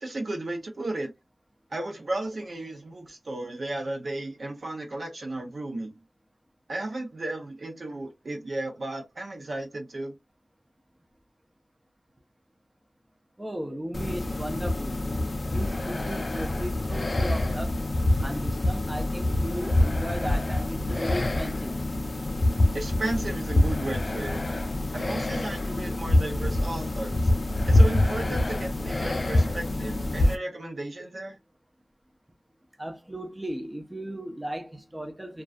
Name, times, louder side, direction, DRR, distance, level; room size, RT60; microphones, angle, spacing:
voice 1, 0.0-1.1 1.7-5.9 6.7-10.2 22.7-24.4 24.9-27.3 27.7-31.4, right 2 dB, 65° right, 0.8 m, -34 dB
voice 2, 13.4-15.1 15.5-17.7 18.2-21.8 32.8-35.4, right 1 dB, 15° right, 0.5 m, -36 dB
sound 1, 13.9-30.3, left 1 dB, 50° left, 0.4 m, -26 dB
2.3 x 2.3 x 2.4 m
wide cardioid pair, 75°, 0 cm